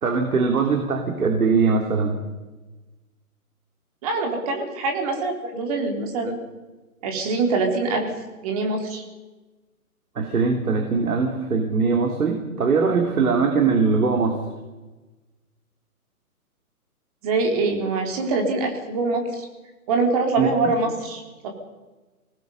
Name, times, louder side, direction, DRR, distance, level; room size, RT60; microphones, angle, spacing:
voice 1, 0.0-2.2 10.2-14.4 20.4-20.5, right 4 dB, 70° right, 3 dB, 3.5 m, -21 dB
voice 2, 4.0-6.4 7.0-8.1 8.4-9.0 17.2-19.5 19.9-21.5, right 3 dB, 25° right, 2 dB, 3.5 m, -24 dB
27.0 x 19.5 x 5.5 m, 1.2 s
hypercardioid pair, 170°, 45 cm